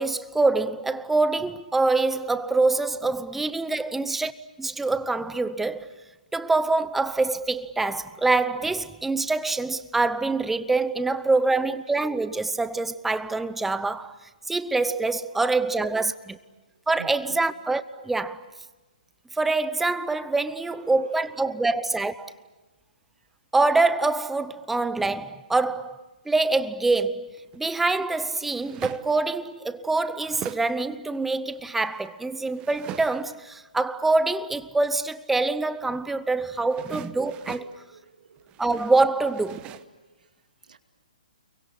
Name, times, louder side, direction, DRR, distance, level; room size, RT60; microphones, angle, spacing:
voice 1, 0.0-4.3 4.6-5.9 6.3-14.1 14.5-16.4 16.9-18.4 19.3-22.3 23.5-27.3 27.6-37.7 38.6-39.7, right 3 dB, 5° right, 0.9 m, -25 dB
voice 2, 3.4-3.7 11.0-11.7 15.3-16.1 17.0-17.4 20.6-21.7 36.7-36.8 37.4-38.6 40.2-40.3 40.6-40.8, right 6 dB, 75° right, 2.5 m, -50 dB
sound 1, 27.0-27.6 28.4-29.3 29.7-30.8 31.2-33.5 36.5-37.8 38.4-39.8, right 12 dB, 20° right, 1.1 m, -41 dB
29.5 x 23.5 x 8.5 m
hypercardioid pair, 145°, 4 cm